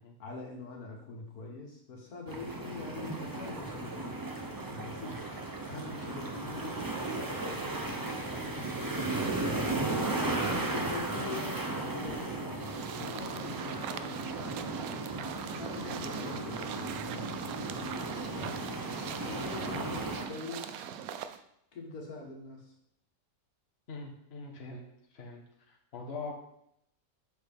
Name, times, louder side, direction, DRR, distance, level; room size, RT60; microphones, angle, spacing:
voice 1, 0.2-4.3 4.7-5.2 5.6-6.8 7.1-10.0 10.7-14.7 15.6-18.8 19.1-20.9 21.7-22.6, left 3 dB, 85° left, 0 dB, 1.9 m, -44 dB
sound 1, 2.3-20.3, right 2 dB, 20° right, 0.6 m, -35 dB
sound 2, 12.6-21.4, right 9 dB, 75° right, 1.0 m, -42 dB
voice 2, 23.9-24.8 25.1-26.3, left 3 dB, 45° left, 0 dB, 1.4 m, -43 dB
7.9 x 6.0 x 3.5 m, 0.73 s
omnidirectional pair, 1.5 m